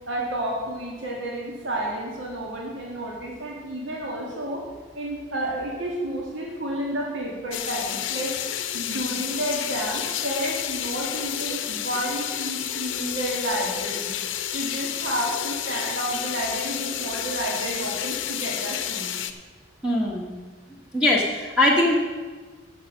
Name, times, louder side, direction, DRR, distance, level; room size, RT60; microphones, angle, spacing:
voice 1, 0.1-4.7 4.9-8.4 8.7-14.2 14.5-19.1, right 1 dB, 70° right, -2 dB, 1.8 m, -30 dB
sound 1, 7.5-19.3, left 10 dB, 70° left, 0.7 m, -30 dB
voice 2, 19.8-20.3 20.9-21.9, left 1 dB, 5° right, -3 dB, 1.2 m, -21 dB
9.8 x 7.3 x 6.2 m, 1.4 s
head